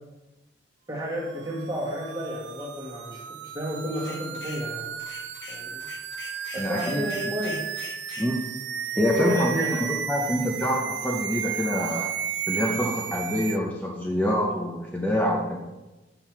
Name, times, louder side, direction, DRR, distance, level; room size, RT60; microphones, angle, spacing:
voice 1, 0.9-4.9 5.5-5.9 6.5-7.7 9.1-9.8, equal, 20° right, -2 dB, 1.5 m, -31 dB
sound 1, 1.3-13.6, right 8 dB, 75° right, 0.4 m, -34 dB
sound 2, 4.0-4.7 5.0-8.3, left 7 dB, 70° left, 0.7 m, -43 dB
voice 2, 6.6-7.1 8.2-8.4 8.9-9.6 10.1-12.1 12.5-15.6, equal, 10° left, -3 dB, 0.7 m, -26 dB
6.7 x 5.8 x 4.6 m, 1.1 s
head